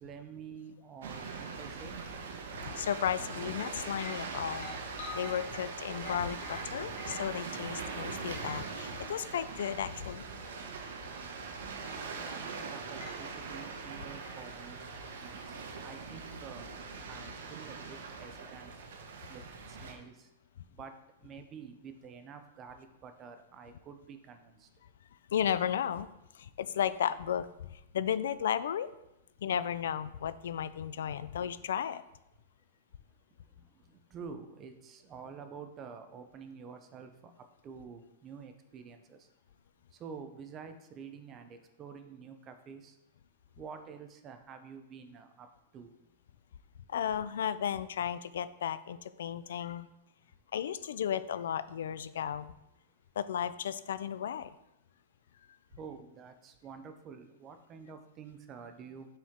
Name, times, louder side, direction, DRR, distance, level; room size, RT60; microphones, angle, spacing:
voice 1, 0.0-2.0 12.1-14.8 15.2-16.7 17.1-18.7 19.3-19.4 19.7-20.3 20.8-20.9 21.2-24.7 34.1-37.3 37.6-39.2 40.0-42.9 43.6-45.5 45.7-45.9 55.8-59.1, right 6 dB, 20° right, 8 dB, 0.5 m, -48 dB
sound 1, 1.0-19.9, right 4 dB, 75° right, 1.0 m, -42 dB
voice 2, 2.6-4.7 5.1-10.3 25.3-26.1 26.3-28.9 29.4-32.0 46.9-49.9 50.5-52.5 53.2-54.5, left 9 dB, 85° left, 15 dB, 0.3 m, -34 dB
sound 2, 3.9-9.9 10.3-10.5 11.8-12.4 13.0-13.3 14.2-14.4, left 3 dB, 55° left, 1.4 m, -48 dB
7.2 x 4.5 x 3.6 m, 0.88 s
supercardioid pair, 175°, 0 cm